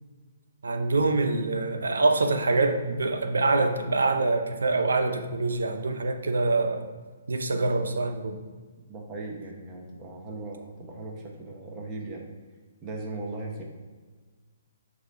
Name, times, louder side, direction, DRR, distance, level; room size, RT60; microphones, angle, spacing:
voice 1, 0.6-6.9 7.3-8.4, right 3 dB, 85° right, 7 dB, 0.7 m, -25 dB
voice 2, 8.9-12.3 12.8-13.6, right 2 dB, 20° right, -1 dB, 1.1 m, -38 dB
6.6 x 2.8 x 5.2 m, 1.4 s
hypercardioid pair, 140°, 0 cm